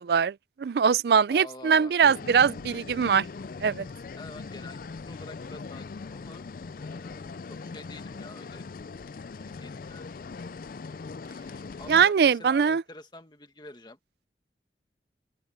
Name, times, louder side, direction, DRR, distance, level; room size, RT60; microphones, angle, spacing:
voice 1, 0.0-3.3 3.6-3.9 11.9-12.8, right 6 dB, 60° right, 0.4 m, -22 dB
voice 2, 1.3-1.9 4.2-4.8 5.0-8.7 9.4-10.1 11.8-14.0, left 2 dB, 25° left, 1.9 m, -47 dB
sound 1, 2.0-12.1, left 4 dB, 50° left, 0.4 m, -40 dB
open air
head